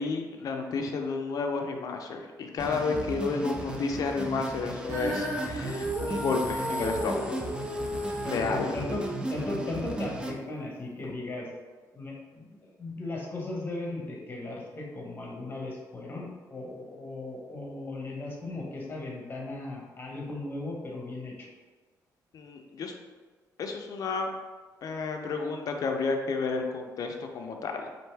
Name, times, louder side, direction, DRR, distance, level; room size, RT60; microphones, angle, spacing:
voice 1, 0.0-7.4 8.3-8.8 22.3-22.9 23.6-24.3 24.8-27.9, left 4 dB, 60° left, 3 dB, 0.5 m, -31 dB
sound 1, 2.6-10.3, right 2 dB, 15° right, 0.5 m, -36 dB
Female singing, 4.9-11.1, equal, 40° right, 1.5 m, -35 dB
voice 2, 8.2-11.5 11.9-21.5, left 2 dB, 30° left, -1 dB, 1.0 m, -37 dB
4.3 x 2.6 x 3.3 m, 1.3 s
cardioid pair, 100°, 7 cm